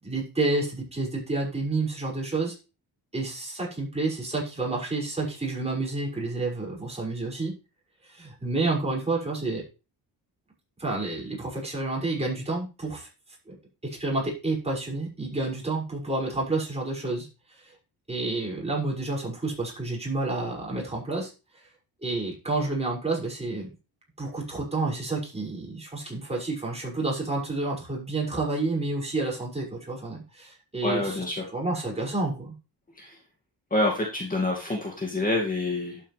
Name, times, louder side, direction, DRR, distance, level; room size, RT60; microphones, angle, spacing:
voice 1, 0.0-2.5 3.1-7.5 8.0-9.6 10.8-13.1 13.5-13.6 13.8-17.7 18.1-21.3 22.0-23.7 24.2-31.2 31.5-32.5, right 2 dB, 15° right, -3 dB, 6.1 m, -29 dB
voice 2, 30.8-31.5 33.0-33.2 33.7-36.0, left 2 dB, 20° left, 0 dB, 2.3 m, -27 dB
11.0 x 8.7 x 3.4 m, 0.30 s
cardioid pair, 110°, 40 cm